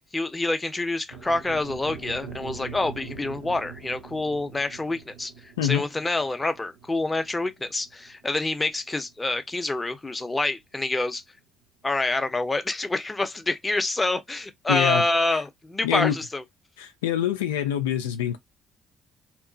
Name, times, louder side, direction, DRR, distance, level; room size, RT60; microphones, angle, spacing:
voice 1, 0.1-11.2 11.8-16.4, left 2 dB, 20° left, 0.6 m, -27 dB
sound 1, 1.1-9.3, right 5 dB, 85° right, 0.7 m, -43 dB
voice 2, 14.7-15.0 15.3-15.4 15.8-16.2 16.8-18.4, left 10 dB, 85° left, 0.3 m, -25 dB
2.9 x 2.0 x 2.6 m
hypercardioid pair, 50°, 0 cm